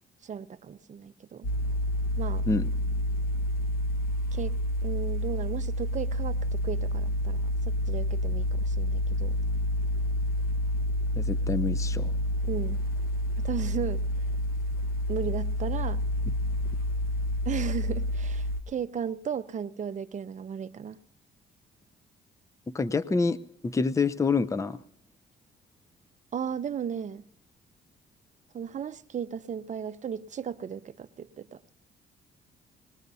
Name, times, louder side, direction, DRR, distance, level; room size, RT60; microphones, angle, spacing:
voice 1, 0.2-1.5 2.2-2.5 4.3-4.6 4.8-9.4 12.4-12.8 13.4-14.0 15.1-16.0 17.5-21.0 26.3-27.2 28.5-31.6, right 7 dB, 40° right, 11 dB, 0.6 m, -35 dB
sound 1, 1.4-18.6, left 1 dB, 50° left, 1.2 m, -29 dB
voice 2, 11.2-12.1 22.7-24.8, left 4 dB, 15° left, 15 dB, 0.5 m, -27 dB
21.0 x 19.0 x 2.7 m, 0.75 s
cardioid pair, 90°, 20 cm